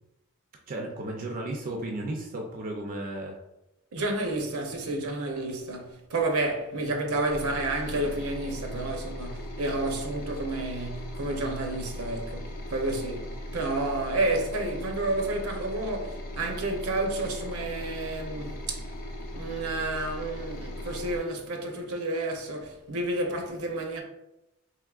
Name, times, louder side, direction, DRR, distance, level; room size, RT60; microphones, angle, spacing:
voice 1, 0.7-3.4, right 1 dB, 40° right, 0.4 m, -34 dB
voice 2, 3.9-18.9 19.3-24.0, right 2 dB, 80° right, 0.6 m, -30 dB
sound 1, 7.3-21.2, left 1 dB, 40° left, 0.5 m, -38 dB
3.5 x 3.1 x 2.3 m
head